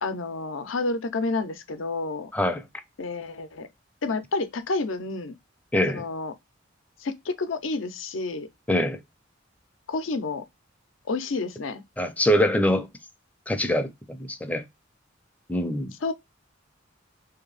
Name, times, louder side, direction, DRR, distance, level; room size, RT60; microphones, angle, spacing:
voice 1, 0.0-2.3 3.0-3.7 4.0-5.3 5.9-6.3 7.0-8.5 9.9-10.4 11.1-11.8 16.0-16.1, left 3 dB, 75° left, 0.6 m, -29 dB
voice 2, 2.3-2.6 5.7-6.0 8.7-9.0 12.0-12.9 13.5-14.7 15.5-15.9, left 1 dB, 10° left, 0.5 m, -24 dB
3.3 x 2.8 x 3.8 m
head